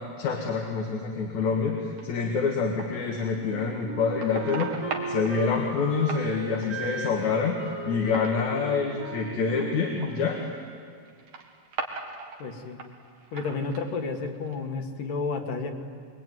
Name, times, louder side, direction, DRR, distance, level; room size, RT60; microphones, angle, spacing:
voice 1, 0.0-4.7 5.1-10.5, left 5 dB, 65° left, 1 dB, 3.2 m, -27 dB
sound 1, 2.0-3.0 3.5-5.3 6.0-7.4 7.8-8.6 9.4-9.6 9.9-10.1 11.1-12.4 12.7-13.9 14.3-14.5, right 4 dB, 65° right, 3.5 m, -38 dB
Wind instrument woodwind instrument, 3.4-10.9, right 3 dB, 45° right, 3.0 m, -38 dB
voice 2, 12.4-12.8 13.3-15.7, left 4 dB, 85° left, 4 dB, 3.5 m, -31 dB
26.5 x 22.5 x 9.4 m, 2.2 s
omnidirectional pair, 3.6 m